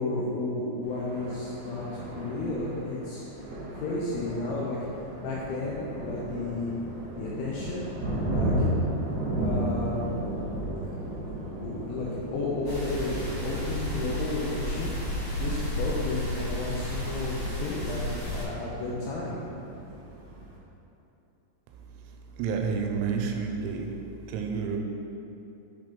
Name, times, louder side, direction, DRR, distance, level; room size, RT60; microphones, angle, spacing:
voice 1, 0.0-3.2 3.7-4.8 5.2-6.7 7.2-7.9 8.2-8.5 9.4-10.0 11.6-14.9 15.4-18.0 18.3-19.4, left 2 dB, 85° left, -6 dB, 2.6 m, -32 dB
Thunder, 0.8-20.6, right 1 dB, 70° right, 1.8 m, -35 dB
sound 1, 12.7-18.5, equal, 65° left, 3.3 m, -32 dB
voice 2, 22.4-24.0 24.3-24.8, right 5 dB, 90° right, 3 dB, 3.3 m, -29 dB
7.7 x 3.2 x 5.1 m, 2.9 s
omnidirectional pair, 6.0 m